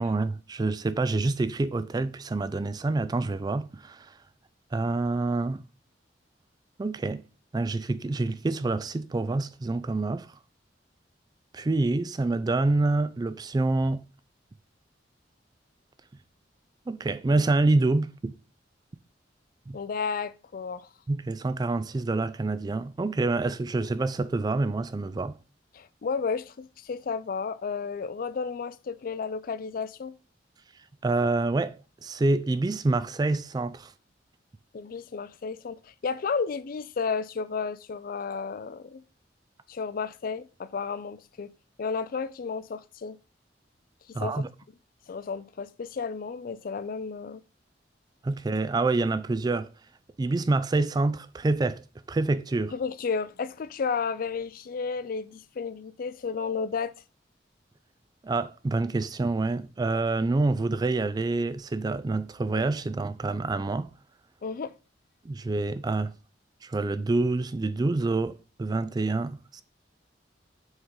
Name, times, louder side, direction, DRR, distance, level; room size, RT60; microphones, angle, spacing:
voice 1, 0.0-4.1 4.7-5.6 6.8-7.2 7.5-10.3 11.5-14.0 16.9-18.3 19.7-19.8 21.1-25.3 31.0-31.7 32.0-33.9 44.1-44.5 48.2-49.7 50.2-51.8 52.1-52.7 58.2-63.9 65.3-66.1 66.6-69.6, right 3 dB, 20° right, 0.3 m, -27 dB
voice 2, 19.7-20.9 25.7-30.1 34.7-39.0 39.7-41.5 41.8-43.2 44.1-44.4 45.1-47.4 52.7-56.9 64.4-64.7, left 5 dB, 50° left, 0.4 m, -32 dB
6.3 x 3.7 x 4.6 m
head